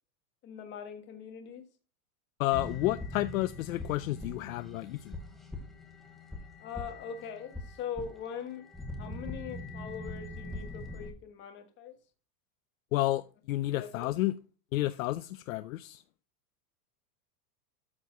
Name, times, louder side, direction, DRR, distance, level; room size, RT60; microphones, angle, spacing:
voice 1, 0.4-1.6 6.6-8.7 8.9-12.0 13.7-14.1, left 7 dB, 20° left, 1.5 m, -42 dB
voice 2, 2.4-5.1 12.9-14.3 14.7-16.0, left 16 dB, 55° left, 0.5 m, -31 dB
sound 1, 2.5-11.1, left 2 dB, ahead, 0.8 m, -42 dB
13.0 x 4.4 x 6.0 m
supercardioid pair, 170°, 50 cm